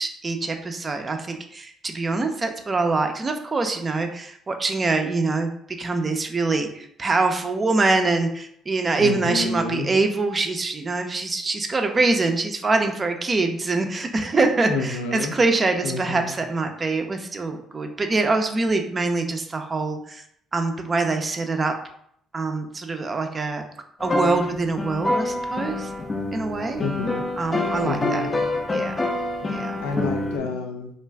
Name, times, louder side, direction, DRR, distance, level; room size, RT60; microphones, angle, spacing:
voice 1, 0.0-5.5 5.8-20.2 20.5-21.7 22.3-23.6 24.0-25.9 26.3-26.8 27.4-28.2 28.7-28.9 29.5-29.8 30.2-30.6, right 3 dB, 35° right, 5 dB, 0.4 m, -24 dB
voice 2, 9.0-9.9 14.7-15.3 15.8-16.3 26.8-27.2 27.8-28.3 29.4-30.9, left 3 dB, 90° left, 3 dB, 0.4 m, -29 dB
sound 1, 24.0-30.4, left 2 dB, 30° left, 0.5 m, -26 dB
2.5 x 2.2 x 3.3 m, 0.70 s
supercardioid pair, 60°, 0 cm